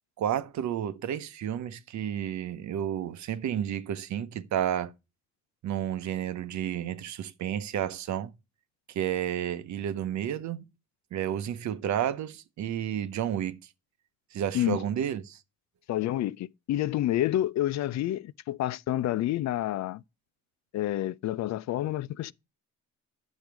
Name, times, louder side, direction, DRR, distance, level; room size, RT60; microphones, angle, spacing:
voice 1, 0.2-4.9 5.6-8.3 8.9-10.6 11.1-13.6 14.3-15.4, right 10 dB, 70° right, 0.9 m, -31 dB
voice 2, 15.9-20.0 20.7-22.3, left 13 dB, 65° left, 0.5 m, -29 dB
10.5 x 6.4 x 4.6 m
cardioid pair, 90°, 30 cm